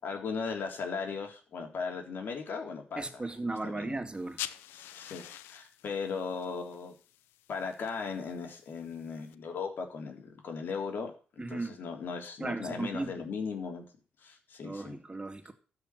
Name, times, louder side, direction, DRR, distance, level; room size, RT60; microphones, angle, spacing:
voice 1, 0.0-4.0 4.7-6.9 7.5-13.8 14.2-15.0, left 5 dB, 65° left, 3.6 m, -38 dB
voice 2, 3.0-4.4 11.4-11.7 12.4-13.1 14.6-15.5, right 2 dB, 25° right, 2.5 m, -36 dB
sound 1, 4.1-9.3, left 14 dB, 90° left, 0.6 m, -46 dB
13.0 x 5.9 x 8.4 m
supercardioid pair, 55°, 4 cm